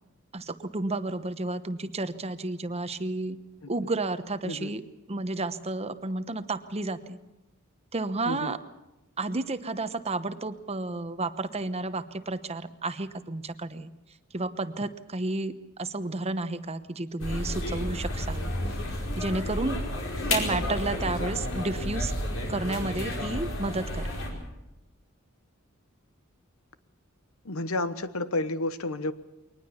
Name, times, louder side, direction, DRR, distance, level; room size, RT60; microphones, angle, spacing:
voice 1, 0.3-3.4 3.7-4.8 5.1-7.2 7.9-8.6 9.2-13.9 14.3-18.5 19.2-19.8 20.3-22.1 22.5-24.1, right 2 dB, 30° right, 11 dB, 1.0 m, -31 dB
sound 1, 17.2-24.3, left 1 dB, 65° left, 5.0 m, -31 dB
voice 2, 27.4-29.1, left 2 dB, 90° left, 13 dB, 1.2 m, -30 dB
23.0 x 19.5 x 7.1 m, 0.97 s
head